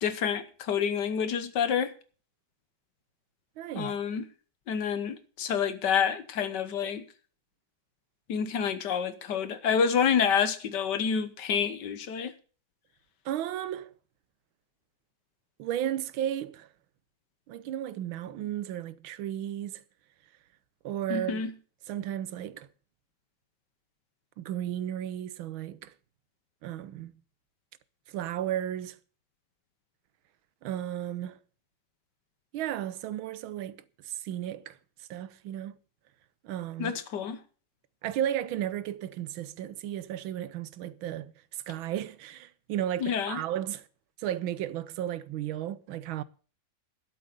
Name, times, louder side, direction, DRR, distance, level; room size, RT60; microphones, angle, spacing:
voice 1, 0.0-1.9 3.7-4.3 4.7-7.0 8.3-12.3 21.1-21.5 36.8-37.4 43.0-43.4, left 7 dB, 65° left, 1.6 m, -28 dB
voice 2, 3.6-3.9 13.2-13.9 15.6-16.7 17.5-19.8 20.8-21.4 21.9-22.7 24.4-25.9 26.6-27.1 28.1-29.0 30.6-31.4 32.5-34.8 35.1-35.8 36.4-36.9 38.0-43.9 44.2-46.2, right 11 dB, 85° right, 1.6 m, -34 dB
12.5 x 7.8 x 6.7 m
omnidirectional pair, 2.1 m